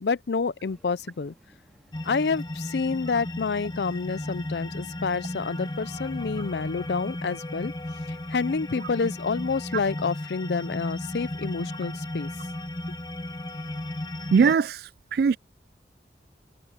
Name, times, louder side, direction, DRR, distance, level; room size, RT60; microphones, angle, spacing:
voice 1, 0.0-1.3 2.0-7.7 8.1-12.3, left 4 dB, 65° left, 0.5 m, -28 dB
sound 1, 0.6-10.8, equal, ahead, 3.8 m, -61 dB
sound 2, 1.9-14.5, left 1 dB, 25° left, 0.9 m, -35 dB
voice 2, 14.3-14.8 15.1-15.4, right 5 dB, 60° right, 0.3 m, -20 dB
head